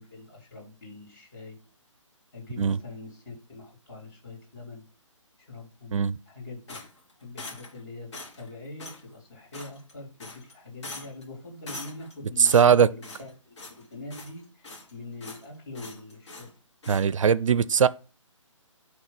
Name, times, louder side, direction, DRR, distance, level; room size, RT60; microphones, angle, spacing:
voice 1, 0.0-1.6 2.3-4.8 5.5-6.0 6.3-6.8 7.2-13.6 13.9-16.5, left 2 dB, 35° left, 3.7 m, -43 dB
sound 1, 6.7-7.8 8.1-8.5 8.8-9.0 9.5-9.9 10.2-10.5 10.8-11.2 11.7-12.1 12.4-13.3 13.6-13.8 14.1-14.9 15.2-15.5 15.7-16.5 16.8-17.1, left 2 dB, 60° left, 2.0 m, -42 dB
voice 2, 12.4-12.9 16.9-17.9, right 7 dB, 75° right, 0.4 m, -20 dB
9.2 x 3.2 x 4.1 m
hypercardioid pair, 155°, 17 cm